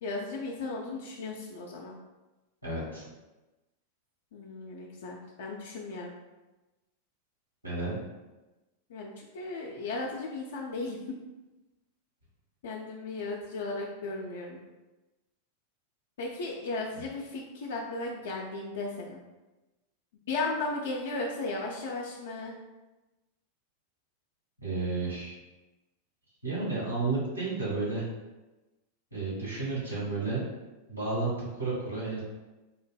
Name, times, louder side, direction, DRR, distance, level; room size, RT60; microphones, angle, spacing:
voice 1, 0.0-2.0 4.3-6.1 8.9-11.0 12.6-14.6 16.2-19.2 20.3-22.6, left 3 dB, 60° left, -2 dB, 0.4 m, -35 dB
voice 2, 2.6-3.0 7.6-7.9 24.6-25.3 26.4-28.0 29.1-30.4 30.9-32.2, right 3 dB, 85° right, -8 dB, 1.3 m, -32 dB
3.7 x 2.6 x 2.2 m, 1.1 s
figure-of-eight pair, 90°, 0 cm